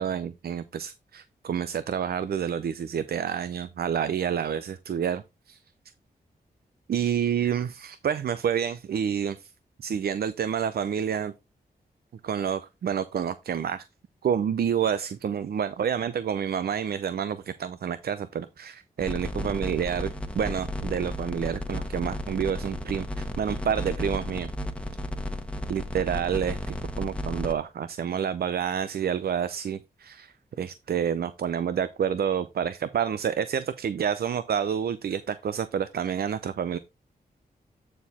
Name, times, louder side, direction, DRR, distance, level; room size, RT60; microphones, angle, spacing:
voice 1, 0.0-5.6 6.9-9.5 9.8-11.3 12.2-13.8 14.2-24.5 25.7-26.6 27.0-30.3 30.6-36.8, right 8 dB, 70° right, 0.6 m, -28 dB
sound 1, 19.0-27.5, left 1 dB, 5° left, 1.3 m, -33 dB
9.4 x 4.4 x 4.2 m
cardioid pair, 70°, 17 cm